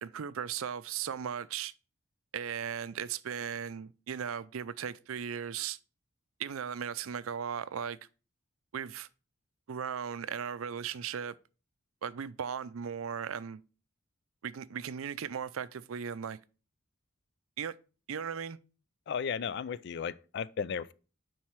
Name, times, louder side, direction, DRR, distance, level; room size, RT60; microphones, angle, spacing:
voice 1, 0.0-1.7 2.3-5.8 6.4-8.0 8.7-9.1 9.7-11.4 12.0-13.6 14.4-16.4 17.6-17.8 18.1-18.6, right 7 dB, 75° right, 0.4 m, -37 dB
voice 2, 19.1-20.9, left 6 dB, 55° left, 0.3 m, -35 dB
7.3 x 4.7 x 4.7 m
head